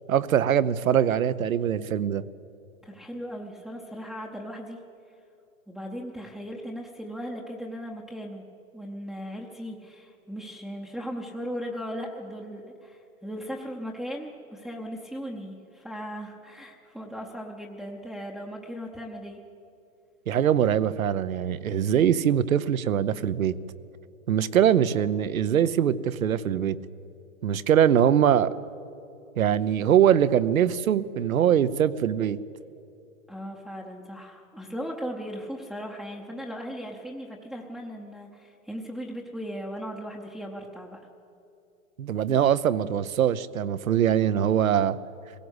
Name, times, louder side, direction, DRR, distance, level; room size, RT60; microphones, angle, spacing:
voice 1, 0.1-2.2 20.3-23.5 24.3-26.8 27.4-28.5 29.4-32.4 42.0-45.0, right 9 dB, 85° right, 14 dB, 1.0 m, -22 dB
voice 2, 2.8-4.8 5.7-8.4 8.7-19.4 33.3-41.0, equal, ahead, -2 dB, 0.7 m, -37 dB
20.5 x 17.5 x 8.1 m, 2.7 s
hypercardioid pair, 150°, 40 cm